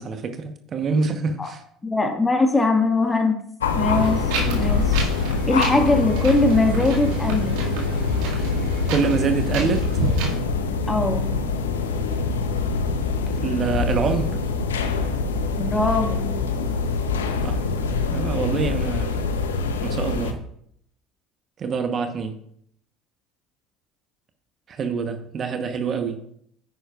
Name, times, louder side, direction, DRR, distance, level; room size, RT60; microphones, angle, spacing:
voice 1, 0.0-1.6 4.4-4.7 8.9-10.0 13.4-14.4 17.4-17.6 18.1-19.3 19.8-20.4 21.6-22.4 24.7-26.2, right 5 dB, 45° right, 7 dB, 1.0 m, -26 dB
voice 2, 1.8-3.4 3.8-5.0 5.5-7.6 10.9-11.3 15.6-16.3, left 2 dB, 20° left, 4 dB, 1.7 m, -21 dB
sound 1, 3.6-20.3, left 4 dB, 90° left, 0.7 m, -24 dB
Wind, 3.9-10.3, right 3 dB, 75° right, 2.0 m, -31 dB
9.9 x 9.4 x 2.4 m, 0.67 s
hypercardioid pair, 70°, 0 cm